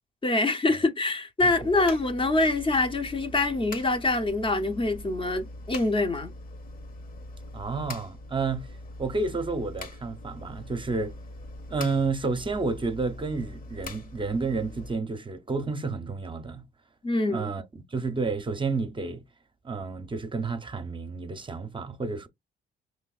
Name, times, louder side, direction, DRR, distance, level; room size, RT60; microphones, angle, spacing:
voice 1, 0.2-6.3 17.0-17.5, left 2 dB, 25° left, 0.7 m, -25 dB
sound 1, 1.4-14.9, left 2 dB, 45° left, 1.0 m, -42 dB
voice 2, 7.5-8.7 9.0-11.1 11.7-16.6 17.3-17.6 17.9-19.2 19.6-22.3, right 4 dB, 25° right, 0.6 m, -30 dB
5.0 x 3.2 x 2.3 m
cardioid pair, 90°, 20 cm